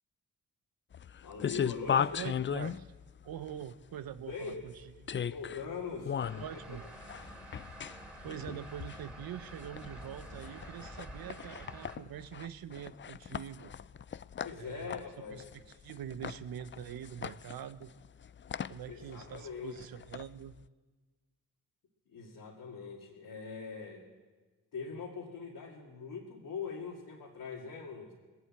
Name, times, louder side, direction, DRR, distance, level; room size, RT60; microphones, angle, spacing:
sound 1, 0.9-20.6, left 8 dB, 35° left, 0.4 m, -38 dB
voice 1, 1.2-2.2 4.3-4.6 5.2-6.4 14.4-15.4 18.9-19.8 22.1-24.0 24.7-28.1, left 5 dB, 80° left, -3 dB, 2.1 m, -42 dB
voice 2, 2.0-2.9 3.2-4.7 5.0-5.2 6.3-6.8 8.2-13.7 14.6-15.0 15.3-15.4 15.8-17.9 18.7-20.6, right 10 dB, 80° right, 12 dB, 0.8 m, -44 dB
sound 2, 6.2-12.0, right 1 dB, ahead, 3.7 m, -49 dB
19.5 x 7.9 x 8.7 m, 1.3 s
supercardioid pair, 50°, 35 cm